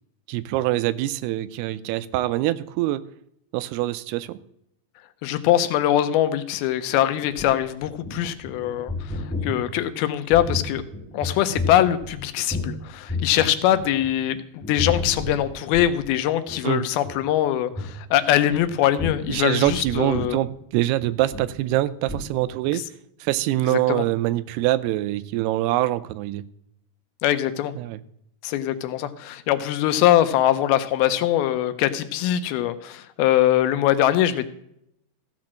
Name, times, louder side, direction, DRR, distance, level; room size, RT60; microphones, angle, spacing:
voice 1, 0.3-3.0 3.5-4.4 16.6-16.9 19.3-22.8 23.2-26.4 27.8-28.0, right 15 dB, 90° right, 15 dB, 2.6 m, -24 dB
voice 2, 5.2-10.8 11.1-20.4 23.7-24.0 27.2-27.7 28.4-34.4, left 12 dB, 80° left, 11 dB, 2.4 m, -22 dB
sound 1, 7.3-12.8 13.1-14.3 14.6-16.1 16.5-16.6 16.9-17.2 17.7-17.9 18.5-21.8 22.1-22.3, left 2 dB, 5° left, 0.9 m, -32 dB
14.5 x 6.0 x 6.2 m, 0.76 s
omnidirectional pair, 4.5 m